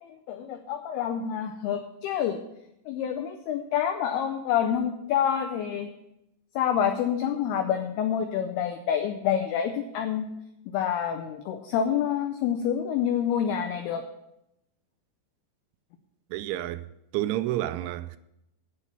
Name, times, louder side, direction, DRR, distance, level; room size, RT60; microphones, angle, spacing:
voice 1, 0.0-2.4 2.9-5.9 6.6-10.3 10.7-14.0, left 9 dB, 85° left, 2.2 m, -27 dB
voice 2, 16.3-16.9 17.1-18.2, right 14 dB, 90° right, 3.0 m, -29 dB
8.2 x 8.1 x 7.0 m
omnidirectional pair, 5.4 m